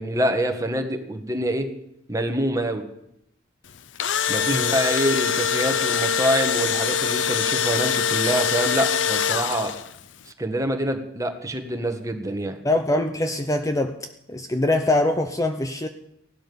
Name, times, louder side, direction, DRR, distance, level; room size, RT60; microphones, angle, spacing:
voice 1, 0.0-1.7 2.1-2.8 4.3-9.7 10.4-12.6, right 1 dB, 15° right, 5 dB, 1.7 m, -26 dB
Engine / Drill, 3.7-10.0, left 7 dB, 65° left, 0.7 m, -23 dB
voice 2, 12.6-14.0 14.3-15.9, left 2 dB, 15° left, 7 dB, 0.8 m, -23 dB
17.0 x 12.0 x 7.0 m, 0.79 s
head